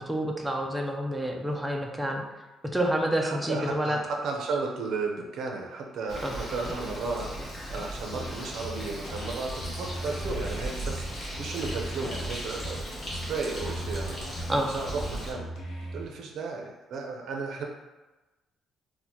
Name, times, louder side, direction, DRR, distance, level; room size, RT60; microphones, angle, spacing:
voice 1, 0.0-2.2 2.7-4.0 6.2-6.3 14.5-14.7, right 1 dB, 5° right, 1 dB, 0.4 m, -28 dB
voice 2, 3.2-15.5 15.9-17.6, right 4 dB, 60° right, 1 dB, 0.5 m, -34 dB
Bird, 6.1-15.3, equal, 25° left, 0.8 m, -37 dB
sound 1, 8.1-16.1, right 1 dB, 85° left, 0.9 m, -39 dB
4.3 x 2.1 x 2.8 m, 1.1 s
cardioid pair, 165°, 0 cm